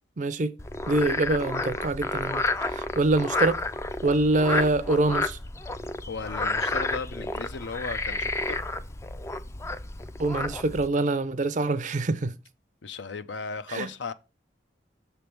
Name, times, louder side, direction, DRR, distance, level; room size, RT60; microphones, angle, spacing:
voice 1, 0.2-0.5 0.9-3.6 4.0-5.4 10.2-12.3 13.7-13.9, right 2 dB, 40° right, 0.5 m, -25 dB
Frog, 0.6-10.9, left 2 dB, 15° left, 0.3 m, -31 dB
voice 2, 6.1-8.6 12.8-14.1, left 4 dB, 80° left, 0.6 m, -36 dB
6.9 x 3.4 x 5.8 m
head